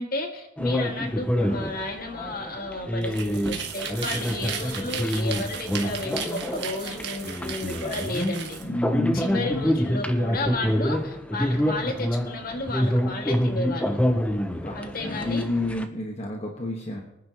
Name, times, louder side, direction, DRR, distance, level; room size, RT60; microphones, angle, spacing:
voice 1, 0.0-8.6 9.1-14.0 14.7-15.5, left 2 dB, 50° left, 3 dB, 2.0 m, -32 dB
sound 1, 0.6-15.9, equal, 5° left, 0.8 m, -27 dB
sound 2, 3.0-8.6, right 7 dB, 65° right, 1.8 m, -36 dB
voice 2, 8.6-9.7 14.6-17.0, left 2 dB, 35° left, 0 dB, 1.4 m, -29 dB
24.5 x 10.0 x 3.0 m, 0.88 s
head